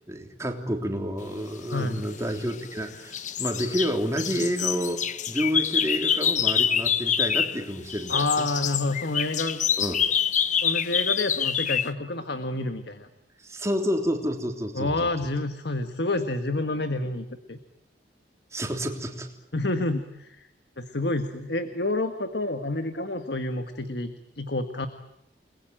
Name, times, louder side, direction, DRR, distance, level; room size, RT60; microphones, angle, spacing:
voice 1, 0.1-8.5 9.8-10.0 13.4-15.1 18.5-19.3, equal, 15° right, 3 dB, 3.4 m, -29 dB
sound 1, 2.0-2.8 3.1-7.6 7.9-11.9, left 8 dB, 40° left, 1.0 m, -26 dB
voice 2, 8.1-9.6 10.6-13.1 14.7-17.6 19.5-20.5 20.8-24.9, left 2 dB, 60° left, 8 dB, 1.5 m, -29 dB
29.5 x 21.0 x 9.0 m, 0.82 s
head